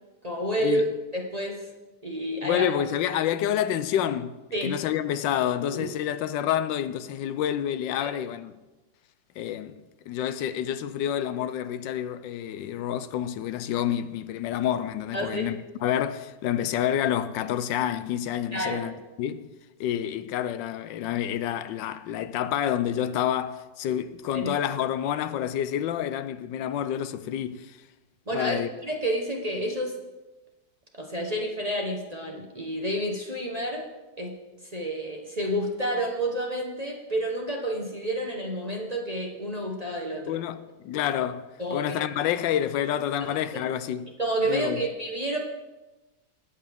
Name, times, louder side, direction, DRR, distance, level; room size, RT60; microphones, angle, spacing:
voice 1, 0.2-0.8 1.1-1.6 2.0-2.7 4.5-4.7 5.6-5.9 8.0-8.1 15.1-15.4 18.5-18.8 24.3-24.5 28.3-29.9 31.0-33.8 34.2-34.3 34.7-40.4 41.6-42.1 43.2-43.3 44.2-45.4, right 1 dB, 25° right, 1.0 m, -29 dB
voice 2, 2.4-4.3 4.6-8.5 9.4-9.8 10.1-18.9 19.2-19.5 19.8-27.8 28.3-28.7 40.3-44.1 44.5-44.8, left 10 dB, 85° left, 1.3 m, -28 dB
19.0 x 8.4 x 3.6 m
omnidirectional pair, 2.0 m